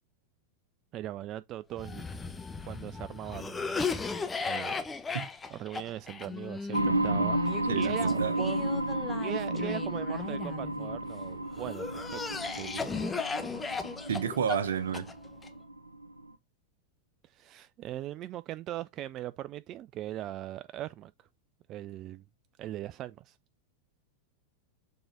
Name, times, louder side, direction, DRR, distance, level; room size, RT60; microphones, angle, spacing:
voice 1, 0.9-2.0 2.6-4.9 5.5-8.8 9.2-12.2 12.5-12.9 17.2-21.1 21.7-22.2 22.6-23.4, right 13 dB, 35° right, 0.3 m, -40 dB
Cough, 1.8-11.0 11.6-15.5, left 4 dB, 15° left, 0.9 m, -36 dB
sound 1, 6.7-16.3, right 2 dB, 85° right, 0.7 m, -32 dB
voice 2, 7.7-8.3 14.1-15.1, right 7 dB, 65° right, 1.0 m, -30 dB
6.8 x 3.8 x 3.6 m
figure-of-eight pair, 90°, 0 cm